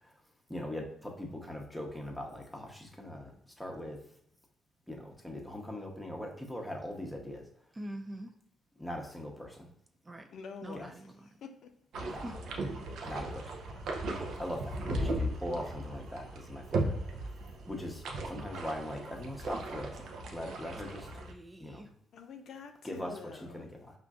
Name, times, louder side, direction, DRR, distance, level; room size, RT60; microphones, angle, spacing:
voice 1, 0.5-4.0 4.9-7.4 8.8-9.7 10.7-10.9 12.1-12.2 13.0-13.5 14.3-17.3 17.7-21.1 21.6-21.8 22.8-23.9, left 1 dB, 5° left, 1 dB, 0.8 m, -41 dB
voice 2, 7.7-8.3 10.0-10.3 10.6-11.4 12.2-12.3 20.6-21.9, right 1 dB, 20° right, 5 dB, 0.4 m, -45 dB
voice 3, 10.3-10.9 11.4-11.7 22.1-23.7, left 5 dB, 70° left, 5 dB, 0.5 m, -46 dB
sound 1, 11.9-21.3, right 2 dB, 75° right, 0.6 m, -37 dB
5.0 x 2.5 x 2.3 m, 0.76 s
cardioid pair, 90°, 0 cm